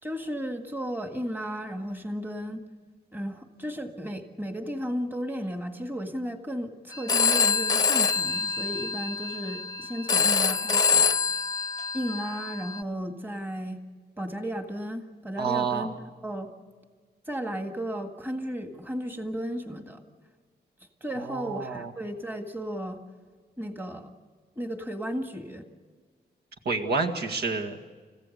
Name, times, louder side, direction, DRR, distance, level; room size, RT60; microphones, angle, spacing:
voice 1, 0.0-2.6 3.1-11.1 11.9-13.8 14.2-15.9 16.2-16.5 17.3-20.0 21.0-23.0 23.6-24.1 24.6-25.7, equal, 10° right, 5 dB, 1.8 m, -34 dB
Telephone, 6.9-12.8, left 5 dB, 25° left, 0.8 m, -25 dB
voice 2, 15.4-15.9 21.3-21.9 26.7-27.8, right 4 dB, 70° right, 2 dB, 1.9 m, -28 dB
30.0 x 15.5 x 6.6 m, 1.5 s
wide cardioid pair, 145°, 17 cm